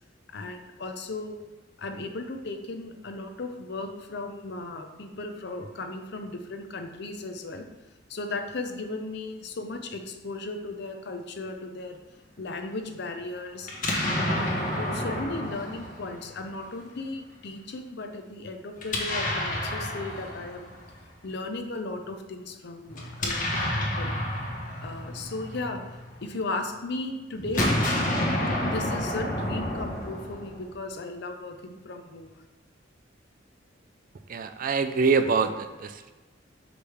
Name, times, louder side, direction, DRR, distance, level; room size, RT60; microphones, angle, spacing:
voice 1, 0.3-1.4 1.8-7.7 8.1-12.0 12.4-13.7 14.1-20.7 21.2-24.1 24.8-27.7 28.6-32.3, left 2 dB, 60° left, 5 dB, 0.7 m, -36 dB
Explosion, 13.6-16.7 18.8-21.0 22.9-26.3 27.4-30.8, left 1 dB, 45° left, 1.2 m, -30 dB
voice 2, 34.3-36.1, right 5 dB, 50° right, 9 dB, 0.4 m, -25 dB
6.3 x 5.1 x 3.4 m, 1.3 s
head